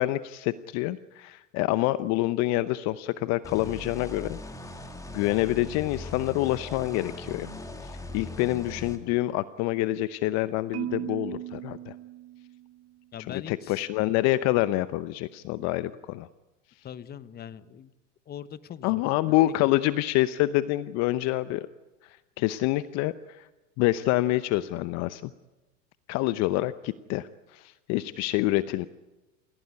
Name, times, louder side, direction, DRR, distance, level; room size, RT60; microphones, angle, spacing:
voice 1, 0.0-4.4 5.1-7.5 7.8-11.9 13.3-16.3 18.8-21.7 22.0-23.5 23.8-25.3 26.1-28.9, left 16 dB, 45° left, 15 dB, 0.8 m, -27 dB
sound 1, 3.4-9.0, left 2 dB, 10° left, 2.8 m, -40 dB
Marimba xylophone, 10.7-12.9, right 14 dB, 40° right, 1.5 m, -37 dB
voice 2, 13.1-13.8 16.8-17.9 18.3-19.0 19.3-19.4, left 9 dB, 25° left, 15 dB, 1.1 m, -41 dB
28.5 x 17.0 x 9.7 m, 1.1 s
hypercardioid pair, 105°, 38 cm